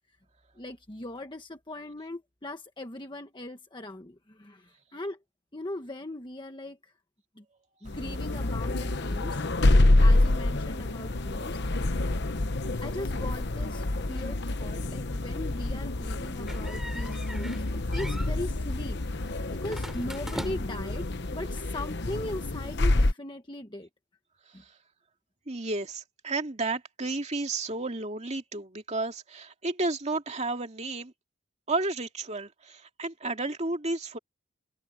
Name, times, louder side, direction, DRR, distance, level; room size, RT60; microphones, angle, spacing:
voice 1, 0.6-5.2 5.5-6.9 7.4-7.5 7.8-12.1 12.8-19.0 19.3-21.1 21.3-23.9 24.5-24.6, left 1 dB, 25° left, 1.3 m, -39 dB
sound 1, 7.9-23.1, left 2 dB, 55° left, 1.0 m, -27 dB
sound 2, 16.5-17.6 17.9-18.3 19.7-20.9, equal, ahead, 5.0 m, -40 dB
voice 2, 25.5-31.1 31.7-34.2, right 2 dB, 35° right, 2.5 m, -32 dB
open air
head